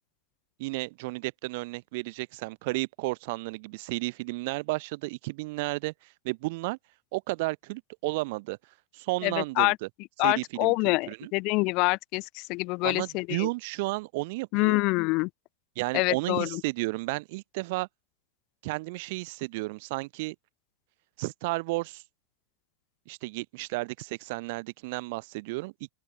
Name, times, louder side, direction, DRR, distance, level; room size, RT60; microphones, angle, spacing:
voice 1, 0.6-5.9 6.2-6.8 7.1-8.6 8.9-9.9 10.2-10.7 11.1-11.3 12.8-14.8 15.8-17.9 18.6-20.4 21.2-22.0 23.1-25.9, right 24 dB, 50° right, 0.5 m, -32 dB
voice 2, 9.2-9.8 10.2-13.5 14.5-15.3 15.9-16.6, left 26 dB, 40° left, 0.4 m, -26 dB
open air
figure-of-eight pair, 90°, 0 cm